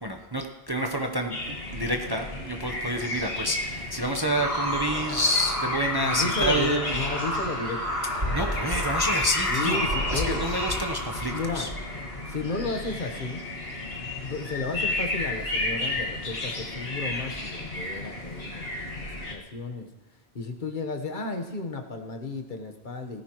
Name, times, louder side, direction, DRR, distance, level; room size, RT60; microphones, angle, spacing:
voice 1, 0.0-6.9 8.3-9.8 10.1-11.7, equal, 25° right, 3 dB, 0.9 m, -28 dB
sound 1, 1.3-19.3, left 2 dB, 65° left, 2.0 m, -33 dB
sound 2, 4.3-12.4, equal, 90° right, 4.4 m, -31 dB
voice 2, 6.0-7.8 9.5-10.4 11.3-11.7 12.3-13.4 14.0-19.9 20.3-23.2, left 3 dB, 50° left, 5 dB, 1.3 m, -33 dB
17.5 x 14.5 x 3.1 m, 1.1 s
omnidirectional pair, 1.1 m